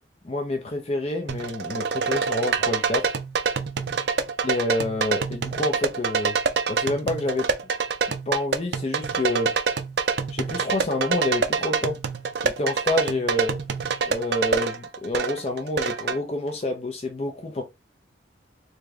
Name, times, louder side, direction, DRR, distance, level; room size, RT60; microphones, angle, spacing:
voice 1, 0.2-3.1 4.4-6.4 6.7-7.5 8.3-9.5 10.3-12.0 12.4-13.6 14.1-17.6, left 2 dB, 35° left, 0.5 m, -28 dB
sound 1, 1.3-16.2, right 5 dB, 60° right, 0.4 m, -26 dB
3.5 x 2.3 x 3.1 m
head